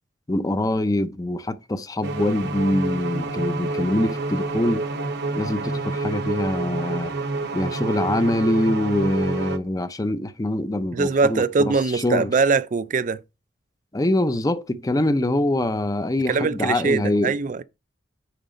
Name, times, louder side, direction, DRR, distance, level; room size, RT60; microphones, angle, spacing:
voice 1, 0.3-4.8 5.3-7.1 7.5-12.3 13.9-17.3, left 1 dB, 20° left, 0.6 m, -24 dB
sound 1, 2.0-9.6, right 3 dB, 60° right, 0.9 m, -28 dB
voice 2, 10.9-13.2 16.3-17.6, right 4 dB, 40° right, 0.4 m, -22 dB
9.2 x 4.0 x 5.2 m
head